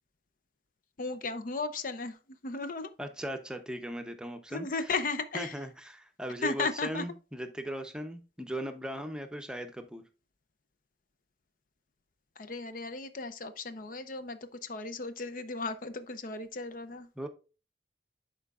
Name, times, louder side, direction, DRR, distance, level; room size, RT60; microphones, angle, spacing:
voice 1, 1.0-2.2 2.4-2.9 4.5-5.6 6.4-7.0 12.4-17.1, left 3 dB, 50° left, 0.6 m, -35 dB
voice 2, 3.0-4.7 5.3-10.0 17.2-17.3, right 1 dB, 5° right, 0.7 m, -38 dB
11.0 x 4.5 x 2.4 m
head